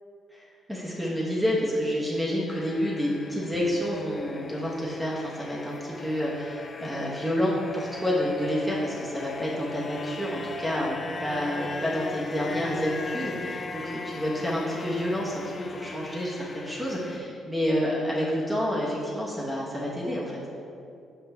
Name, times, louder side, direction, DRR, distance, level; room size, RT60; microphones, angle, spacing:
voice 1, 0.7-20.4, equal, 5° right, -5 dB, 1.0 m, -29 dB
sound 1, 2.5-17.2, left 4 dB, 35° left, 0.4 m, -39 dB
5.5 x 5.5 x 3.4 m, 2.6 s
cardioid pair, 90°, 0 cm